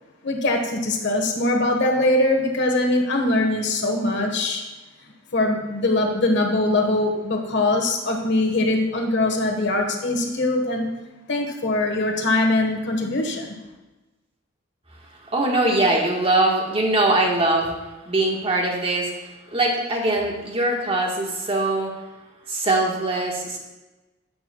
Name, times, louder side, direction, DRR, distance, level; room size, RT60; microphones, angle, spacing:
voice 1, 0.2-4.6 5.3-10.9 11.3-13.5, left 2 dB, 65° left, 2 dB, 1.4 m, -22 dB
voice 2, 15.3-17.7 18.1-22.0 22.5-23.6, right 2 dB, 30° right, 0 dB, 1.5 m, -22 dB
11.0 x 9.2 x 2.3 m, 1.1 s
head